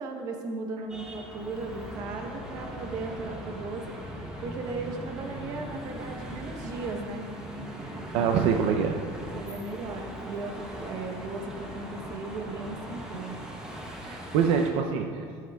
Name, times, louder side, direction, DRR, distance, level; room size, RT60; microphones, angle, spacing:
voice 1, 0.0-3.9 4.4-7.3 7.9-8.3 8.9-9.1 9.3-13.4, right 3 dB, 35° right, 3 dB, 1.0 m, -36 dB
sound 1, 0.9-14.7, equal, 5° right, 1.0 m, -40 dB
voice 2, 8.1-9.0 14.0-15.2, right 6 dB, 65° right, 4 dB, 0.5 m, -25 dB
13.0 x 9.4 x 2.3 m, 2.2 s
cardioid pair, 180°, 10 cm